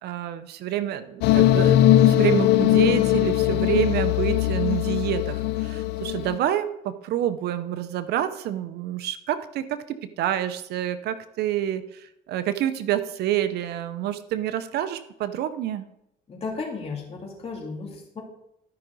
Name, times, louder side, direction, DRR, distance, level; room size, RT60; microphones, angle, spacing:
voice 1, 0.0-15.9, right 11 dB, 75° right, 12 dB, 0.7 m, -28 dB
sound 1, 1.2-6.4, left 13 dB, 85° left, 0.5 m, -20 dB
voice 2, 16.3-18.2, left 4 dB, 35° left, -2 dB, 3.1 m, -34 dB
13.0 x 5.8 x 4.0 m, 0.79 s
cardioid pair, 110°, 17 cm